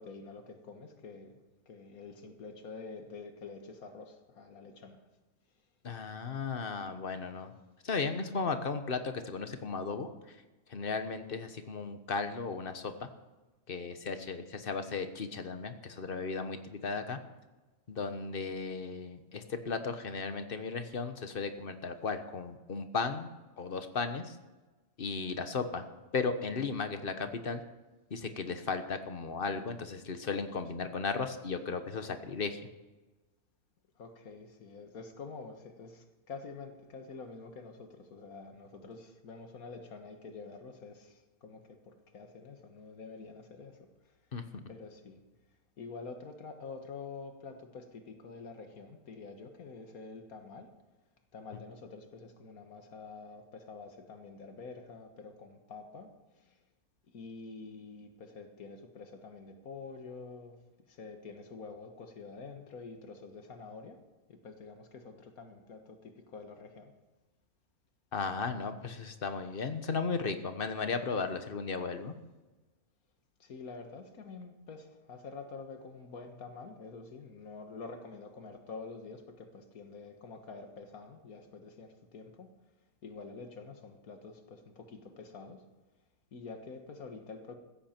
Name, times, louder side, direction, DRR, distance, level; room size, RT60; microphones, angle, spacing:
voice 1, 0.0-1.3 1.7-5.0 34.0-43.8 44.7-45.2 45.8-50.7 51.3-56.6 57.1-60.6 60.9-64.0 64.3-66.9 73.4-82.5 83.0-85.6 86.3-87.6, left 4 dB, 85° left, 6 dB, 1.9 m, -47 dB
voice 2, 5.8-7.5 7.8-10.1 10.7-12.9 13.7-17.2 17.9-23.3 23.6-24.3 25.0-25.8 26.1-27.6 28.1-32.6 44.3-44.6 68.1-72.1, left 4 dB, 40° left, 8 dB, 1.2 m, -35 dB
16.0 x 14.0 x 4.5 m, 1.2 s
omnidirectional pair, 1.5 m